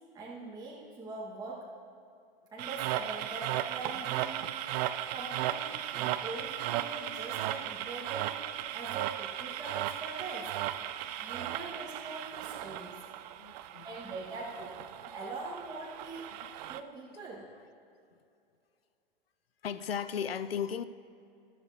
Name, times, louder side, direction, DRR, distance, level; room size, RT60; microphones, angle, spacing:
voice 1, 0.1-1.7 2.5-4.5 5.1-8.5 8.7-10.6 11.2-13.0 13.8-14.7 15.1-16.4 16.7-17.5, right 3 dB, 15° right, 1.5 m, -42 dB
sound 1, 2.6-16.8, right 13 dB, 45° right, 0.5 m, -36 dB
voice 2, 10.8-11.1 11.4-11.7 13.4-13.9 16.6-16.7 19.6-20.8, left 8 dB, 85° left, 0.5 m, -37 dB
13.0 x 12.5 x 2.8 m
hypercardioid pair, 105°, 29 cm